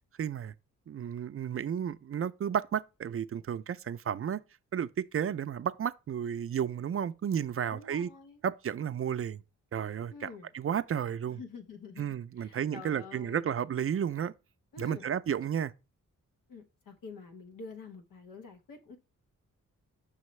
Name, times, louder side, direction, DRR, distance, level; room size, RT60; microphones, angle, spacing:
voice 1, 0.2-0.5 0.9-4.4 4.7-8.1 8.4-9.4 9.7-11.4 12.0-14.3 14.8-15.7, right 8 dB, 45° right, 0.4 m, -32 dB
voice 2, 7.7-8.4 10.1-10.5 11.3-13.5 14.7-15.1 16.5-19.0, left 4 dB, 90° left, 1.0 m, -47 dB
5.6 x 5.3 x 3.1 m
cardioid pair, 55°, 32 cm